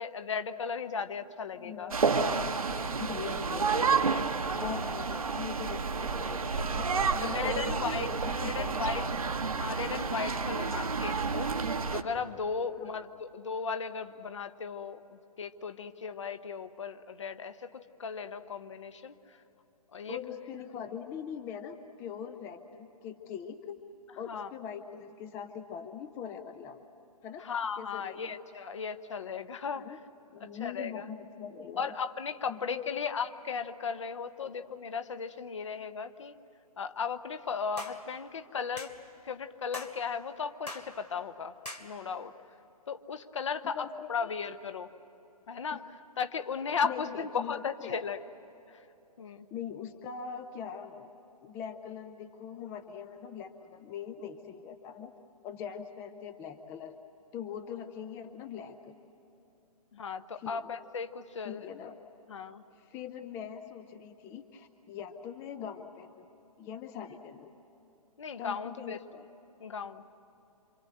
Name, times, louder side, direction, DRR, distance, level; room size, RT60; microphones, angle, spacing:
voice 1, 0.0-1.9 7.2-8.1 8.4-9.0 9.6-11.5 11.9-19.1 19.9-20.2 24.3-24.5 27.4-29.9 30.6-31.1 31.8-36.3 36.8-38.9 39.2-41.5 41.8-42.3 42.9-44.9 45.5-45.8 46.2-48.2 49.2-49.5 59.9-61.7 62.3-62.6 68.2-69.0 69.6-70.0, left 6 dB, 50° left, 10 dB, 1.1 m, -36 dB
voice 2, 1.5-4.3 4.5-9.1 10.4-10.9 12.8-13.1 20.1-23.8 24.2-26.8 27.2-27.5 27.8-28.4 29.8-30.0 30.3-31.9 32.5-33.0 34.4-34.5 43.6-44.3 45.7-45.9 46.8-48.0 49.5-51.1 51.4-55.2 55.4-57.0 57.3-59.0 60.3-60.7 61.4-62.0 62.8-66.2 66.6-67.5 68.4-69.3, left 8 dB, 10° left, 8 dB, 0.5 m, -42 dB
sound 1, 1.9-12.0, right 5 dB, 65° right, 1.2 m, -30 dB
sound 2, 37.8-38.0 38.8-39.0 39.7-40.0 40.7-40.9 41.7-41.9, left 1 dB, 85° left, 2.6 m, -41 dB
27.5 x 25.5 x 7.8 m, 3.0 s
figure-of-eight pair, 130°, 20 cm